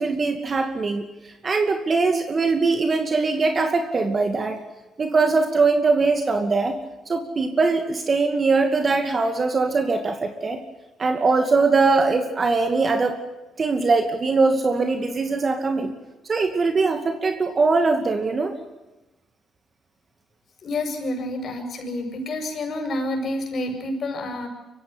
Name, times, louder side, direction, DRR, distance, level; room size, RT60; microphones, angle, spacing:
voice 1, 0.0-4.6 5.0-6.8 7.1-10.6 11.0-13.2 13.6-15.9 16.2-18.5, right 3 dB, 40° right, 6 dB, 2.3 m, -21 dB
voice 2, 20.6-24.5, left 1 dB, 50° left, 4 dB, 7.4 m, -28 dB
24.0 x 16.0 x 9.6 m, 1.1 s
cardioid pair, 90°, 0 cm